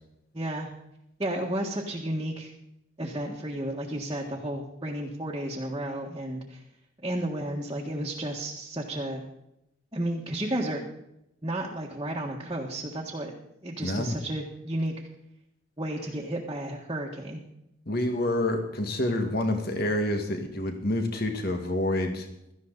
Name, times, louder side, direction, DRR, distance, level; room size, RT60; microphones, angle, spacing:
voice 1, 0.3-0.7 1.2-2.5 3.0-6.6 7.0-9.2 9.9-10.8 11.4-13.3 13.6-14.9 15.8-17.4, right 1 dB, 20° right, -3 dB, 1.6 m, -32 dB
voice 2, 13.8-14.2 17.9-22.3, left 1 dB, 50° left, 5 dB, 2.0 m, -28 dB
17.0 x 13.5 x 4.1 m, 0.82 s
head